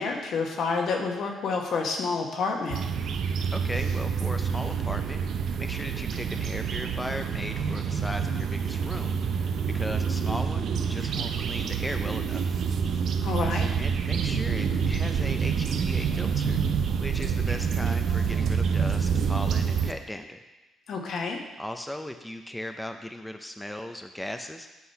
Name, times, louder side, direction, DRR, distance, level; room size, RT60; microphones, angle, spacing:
voice 1, 0.0-2.8 13.2-13.7 20.9-21.4, left 4 dB, 70° left, 2 dB, 1.2 m, -29 dB
sound 1, 2.7-19.9, right 6 dB, 65° right, 0.5 m, -27 dB
voice 2, 3.5-5.2 5.6-9.3 9.7-12.6 13.8-16.6 17.0-20.4 21.6-24.7, left 1 dB, 5° left, 6 dB, 0.5 m, -37 dB
8.5 x 3.9 x 5.6 m, 1.1 s
cardioid pair, 90°, 0 cm